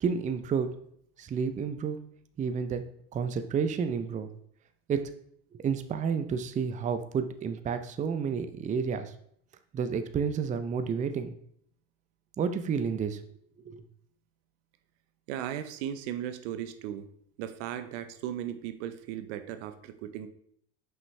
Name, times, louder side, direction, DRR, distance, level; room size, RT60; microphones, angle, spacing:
voice 1, 0.0-0.7 1.2-2.0 2.4-2.8 3.1-4.3 4.9-5.1 5.5-9.1 9.7-11.4 12.4-13.2 13.7-13.8, right 6 dB, 20° right, 9 dB, 0.4 m, -30 dB
voice 2, 15.3-17.0 17.4-20.3, right 10 dB, 75° right, 10 dB, 0.7 m, -36 dB
5.5 x 5.5 x 3.2 m, 0.66 s
supercardioid pair, 100°, 36 cm